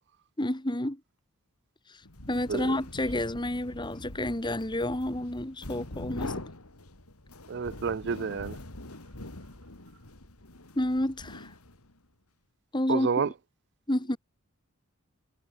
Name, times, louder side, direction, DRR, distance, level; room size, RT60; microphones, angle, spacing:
voice 1, 0.4-1.0 1.9-2.0 2.3-6.3 10.7-11.5 12.7-13.3 13.9-14.2, left 1 dB, 20° left, 1.6 m, -30 dB
sound 1, 2.0-12.0, left 1 dB, 90° left, 3.5 m, -43 dB
voice 2, 7.5-8.6 12.9-13.3, right 5 dB, 50° right, 0.4 m, -29 dB
head